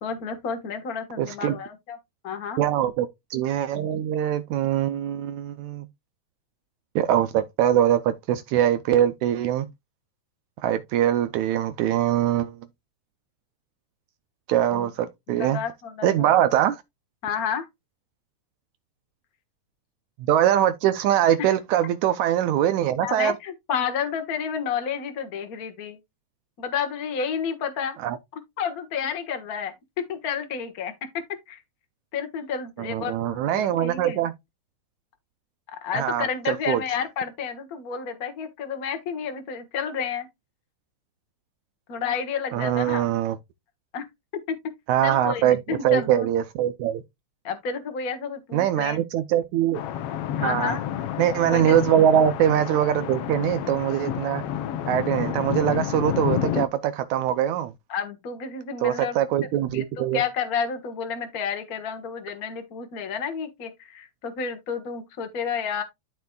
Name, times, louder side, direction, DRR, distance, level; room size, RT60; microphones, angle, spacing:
voice 1, 0.0-2.0 2.2-2.6 14.7-14.9 15.3-16.4 17.2-17.7 23.0-26.0 26.6-28.0 28.6-29.7 30.1-30.9 31.5-31.6 32.1-34.2 35.7-40.3 41.9-43.1 43.9-44.1 45.0-46.3 47.4-49.0 50.4-50.8 51.5-51.7 57.9-59.2 59.7-65.8, left 6 dB, 45° left, 1.1 m, -30 dB
voice 2, 1.2-1.6 2.6-5.9 7.0-9.7 10.6-12.6 14.5-15.6 16.0-16.8 20.2-23.3 28.0-28.2 32.8-34.3 35.9-36.8 42.5-43.4 44.9-47.0 48.5-49.8 50.4-50.8 51.2-54.4 54.9-57.7 58.8-60.2, right 11 dB, 80° right, 2.0 m, -23 dB
sound 1, 49.7-56.7, left 10 dB, 70° left, 1.4 m, -30 dB
13.0 x 4.6 x 2.3 m
omnidirectional pair, 3.4 m